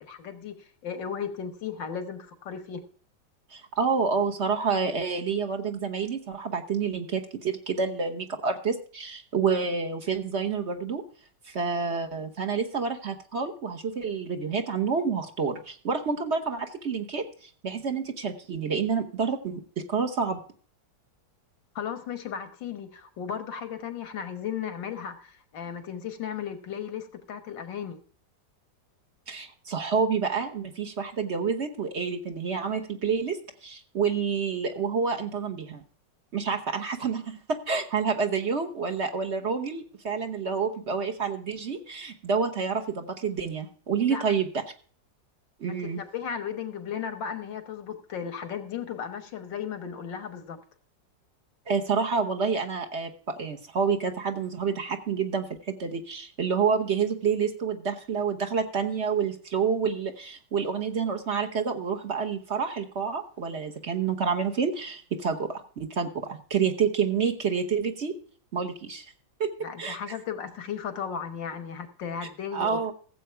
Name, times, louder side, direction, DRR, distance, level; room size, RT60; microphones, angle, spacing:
voice 1, 0.0-2.8 21.8-28.0 44.1-44.3 45.6-50.6 69.6-72.9, left 7 dB, 90° left, 11 dB, 1.9 m, -35 dB
voice 2, 3.5-11.0 11.4-19.6 19.9-20.4 29.3-35.8 36.3-44.5 45.6-46.0 51.7-68.2 68.5-69.1 69.4-69.5 69.8-70.0 72.5-72.9, right 5 dB, 45° right, 5 dB, 1.2 m, -28 dB
15.0 x 7.8 x 4.5 m, 0.43 s
omnidirectional pair, 1.9 m